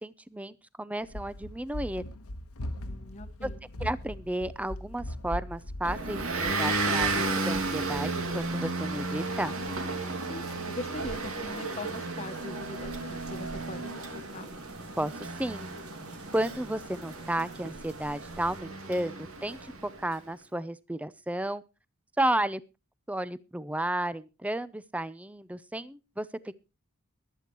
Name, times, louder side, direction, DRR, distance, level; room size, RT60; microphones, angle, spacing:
voice 1, 0.0-2.0 3.4-3.5 3.8-9.6 15.0-15.7 16.3-21.6 22.2-22.6 23.1-26.5, right 1 dB, 5° right, 16 dB, 0.5 m, -33 dB
Run, 1.0-8.1, left 1 dB, 90° left, 1.2 m, -40 dB
voice 2, 2.8-3.6 10.3-14.5, left 2 dB, 30° left, 8 dB, 1.2 m, -42 dB
Motor vehicle (road) / Engine, 5.8-20.1, right 3 dB, 70° right, 2.4 m, -33 dB
sound 1, 8.9-18.6, right 3 dB, 85° right, 4.3 m, -54 dB
23.0 x 8.4 x 3.0 m, 0.29 s
head